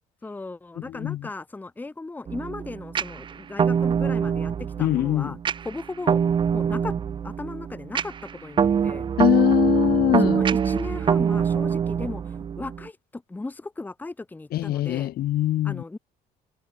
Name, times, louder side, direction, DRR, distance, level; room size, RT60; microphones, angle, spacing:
voice 1, 0.2-5.4 5.6-6.2 6.5-6.9 7.2-9.1 10.2-15.1 15.6-16.0, left 3 dB, 10° left, 0.7 m, -36 dB
voice 2, 0.8-1.3 4.8-5.4 9.2-10.4 14.5-15.8, left 14 dB, 65° left, 0.9 m, -23 dB
sound 1, 2.3-12.9, right 7 dB, 30° right, 0.4 m, -24 dB
cardioid pair, 110°, 17 cm